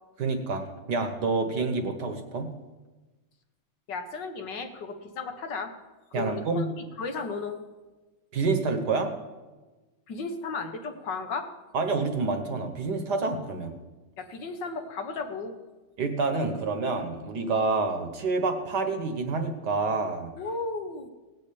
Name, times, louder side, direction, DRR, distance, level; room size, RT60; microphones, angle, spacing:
voice 1, 0.2-2.5 6.1-6.7 8.3-9.1 11.7-13.7 16.0-20.3, right 3 dB, 55° right, 6 dB, 1.7 m, -28 dB
voice 2, 3.9-5.7 6.1-7.6 10.1-11.5 14.2-15.6 20.4-21.1, left 4 dB, 60° left, 6 dB, 1.7 m, -34 dB
18.0 x 6.6 x 8.6 m, 1.2 s
omnidirectional pair, 2.3 m